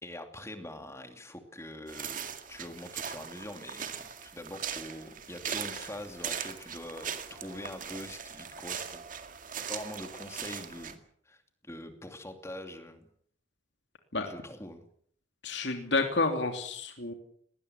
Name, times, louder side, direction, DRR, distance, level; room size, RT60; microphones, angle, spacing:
voice 1, 0.0-9.0 9.7-13.1 14.2-14.8, left 1 dB, 15° left, 6 dB, 2.9 m, -44 dB
sound 1, 1.9-10.9, right 7 dB, 45° right, 2.2 m, -40 dB
voice 2, 15.4-17.1, left 3 dB, 65° left, 5 dB, 3.0 m, -30 dB
20.0 x 19.0 x 8.3 m, 0.65 s
head